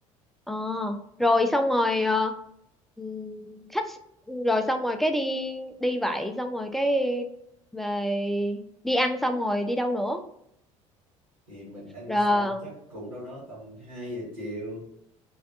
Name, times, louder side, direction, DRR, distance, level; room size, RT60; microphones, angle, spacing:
voice 1, 0.5-2.4 3.0-4.0 4.3-7.3 7.7-10.2 12.1-12.7, left 1 dB, ahead, 5 dB, 0.3 m, -26 dB
voice 2, 11.5-14.9, equal, 90° right, -7 dB, 1.2 m, -39 dB
2.5 x 2.2 x 2.4 m, 0.75 s
hypercardioid pair, 60°, 17 cm